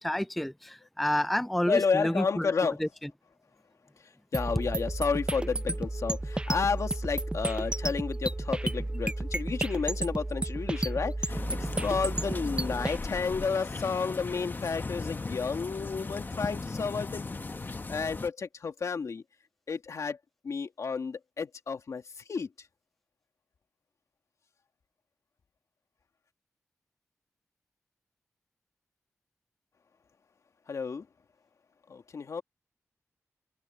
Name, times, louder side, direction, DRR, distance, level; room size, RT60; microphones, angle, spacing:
voice 1, 0.0-3.1, left 1 dB, 5° left, 0.4 m, -30 dB
voice 2, 1.7-2.8 4.3-17.3 17.9-19.2 19.7-20.2 20.4-22.0 22.3-22.5 30.7-31.1 31.9-32.4, left 5 dB, 70° left, 2.0 m, -31 dB
sound 1, 4.3-13.0, right 2 dB, 20° right, 0.7 m, -32 dB
sound 2, 11.3-18.3, left 3 dB, 35° left, 1.1 m, -37 dB
wide cardioid pair, 70°, 5 cm